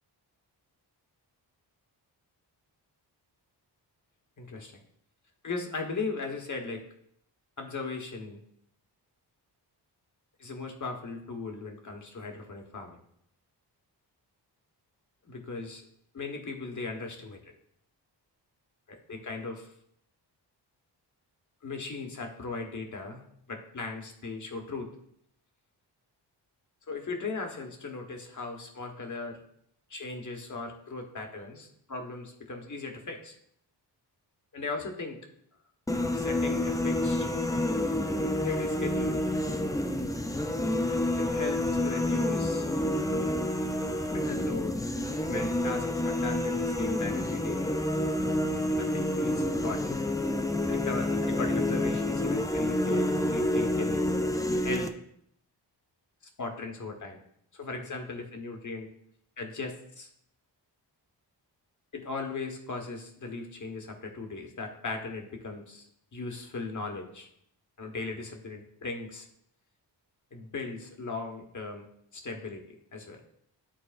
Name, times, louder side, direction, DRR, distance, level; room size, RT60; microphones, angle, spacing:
voice 1, 4.4-4.7 5.4-6.8 7.6-8.4 10.4-13.0 15.2-15.8 16.1-17.4 18.9-19.7 21.6-23.2 23.5-24.9 26.9-29.4 29.9-33.3 34.5-35.2 36.1-37.3 38.4-39.3 41.2-42.7 44.1-44.8 45.2-47.6 48.6-50.0 50.7-54.0 54.5-54.9 56.4-57.2 57.5-58.9 59.4-60.1 61.9-67.3 67.8-69.3 70.3-71.9 72.1-72.6 72.9-73.2, left 3 dB, 45° left, 3 dB, 1.3 m, -38 dB
sound 1, 35.9-54.9, left 1 dB, 10° left, 0.4 m, -28 dB
11.5 x 4.1 x 2.5 m, 0.70 s
wide cardioid pair, 95°, 42 cm